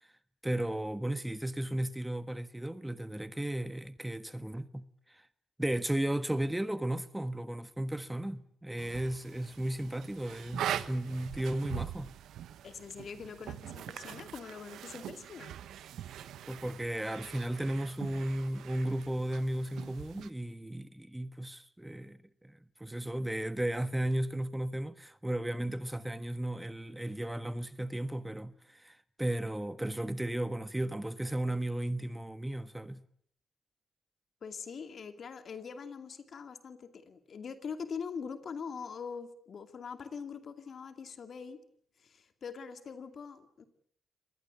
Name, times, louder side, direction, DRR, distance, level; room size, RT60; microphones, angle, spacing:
voice 1, 0.4-5.2 5.6-12.1 16.5-33.0, right 1 dB, 10° right, 1.4 m, -35 dB
sound 1, 8.8-20.3, right 10 dB, 75° right, 1.0 m, -43 dB
voice 2, 12.6-15.6 34.4-41.6 42.0-43.6, left 6 dB, 60° left, 2.5 m, -43 dB
25.5 x 20.0 x 8.4 m
supercardioid pair, 45°, 0 cm